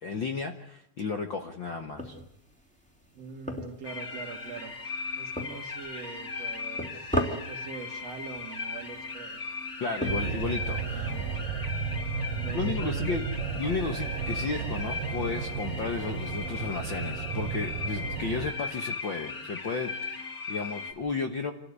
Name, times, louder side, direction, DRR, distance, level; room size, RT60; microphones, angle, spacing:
voice 1, 0.0-2.2 9.8-11.1 12.5-13.2 13.6-21.5, left 4 dB, 50° left, 4 dB, 1.5 m, -33 dB
sound 1, 2.0-11.3, equal, ahead, 2.8 m, -39 dB
voice 2, 3.1-9.4 9.8-10.5 10.9-11.6 12.3-13.2, right 6 dB, 55° right, 5 dB, 2.7 m, -43 dB
sound 2, 3.8-20.9, left 4 dB, 30° left, 3.1 m, -38 dB
sound 3, 10.0-18.5, right 6 dB, 90° right, 2.7 m, -33 dB
28.0 x 13.5 x 9.6 m, 0.76 s
omnidirectional pair, 3.7 m